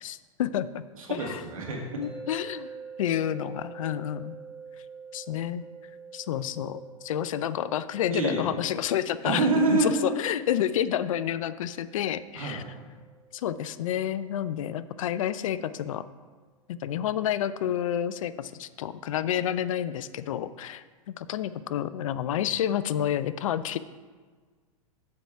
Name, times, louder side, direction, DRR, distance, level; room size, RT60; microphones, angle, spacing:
voice 1, 0.0-0.8 1.1-1.4 2.0-2.7 3.0-4.4 5.1-5.6 6.1-12.6 13.3-16.1 16.7-23.8, left 10 dB, 75° left, 15 dB, 0.4 m, -29 dB
voice 2, 1.0-2.0 8.1-8.5 9.2-9.9 12.3-12.6, right 3 dB, 85° right, 0 dB, 1.7 m, -26 dB
sound 1, 2.0-15.1, right 5 dB, ahead, 1.4 m, -47 dB
6.8 x 4.7 x 6.6 m, 1.5 s
hypercardioid pair, 110°, 17 cm